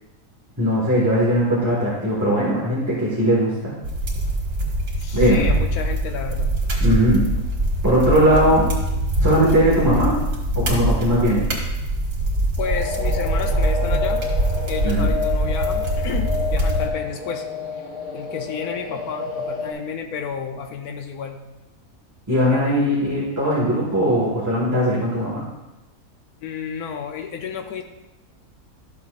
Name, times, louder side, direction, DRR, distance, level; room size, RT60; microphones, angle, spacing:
voice 1, 0.6-3.7 5.1-5.4 6.8-7.3 7.8-8.7 9.2-10.2 10.5-11.5 14.8-15.0 22.3-25.4, equal, 10° right, -7 dB, 1.7 m, -19 dB
sound 1, 3.8-16.9, right 1 dB, 75° right, 2.2 m, -23 dB
voice 2, 5.0-6.5 12.6-14.3 14.7-17.5 17.7-17.9 18.1-21.4 22.4-23.3 26.4-27.8, left 6 dB, 90° left, 4 dB, 1.2 m, -31 dB
sound 2, 12.6-19.7, left 4 dB, 50° left, 3.0 m, -29 dB
12.5 x 7.2 x 2.5 m, 1.0 s
omnidirectional pair, 1.5 m